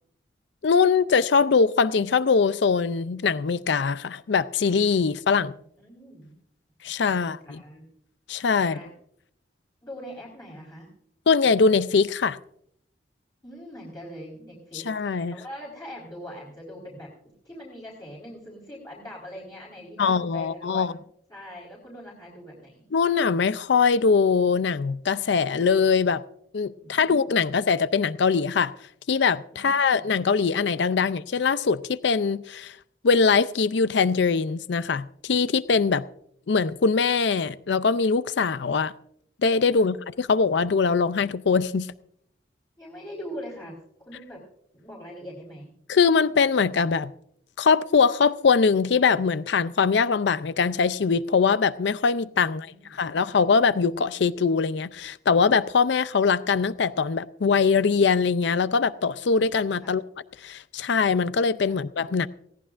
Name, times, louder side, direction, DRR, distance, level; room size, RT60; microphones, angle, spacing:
voice 1, 0.6-5.5 6.8-7.6 8.3-8.8 11.3-12.4 14.7-15.3 20.0-20.9 22.9-26.2 26.5-28.7 29.1-32.8 33.0-36.0 36.5-38.9 39.4-41.9 45.9-47.1 47.6-60.0 60.4-62.3, left 5 dB, 70° left, 0.5 m, -22 dB
voice 2, 5.8-6.3 7.1-7.9 8.6-8.9 9.8-10.9 13.4-17.1 17.4-21.0 21.3-22.8 26.8-27.2 29.5-30.1 39.7-39.9 42.8-43.8 44.0-44.4 44.7-45.7 52.4-53.0 59.8-59.9 61.7-61.8, equal, 20° left, 4.1 m, -42 dB
20.5 x 17.5 x 2.5 m
head